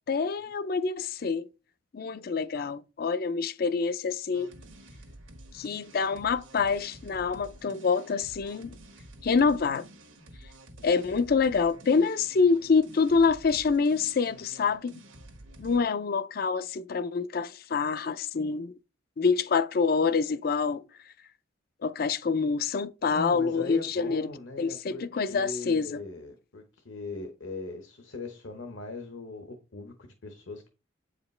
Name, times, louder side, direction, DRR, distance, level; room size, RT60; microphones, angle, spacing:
voice 1, 0.1-1.4 1.9-4.5 5.5-8.8 9.2-9.9 10.8-14.9 15.6-18.7 19.2-20.8 21.8-24.3 24.6-26.0, left 5 dB, 50° left, 0.4 m, -26 dB
sound 1, 4.3-15.8, right 1 dB, 75° right, 1.4 m, -50 dB
voice 2, 23.1-30.7, left 3 dB, 70° left, 1.0 m, -40 dB
8.5 x 5.0 x 3.2 m
head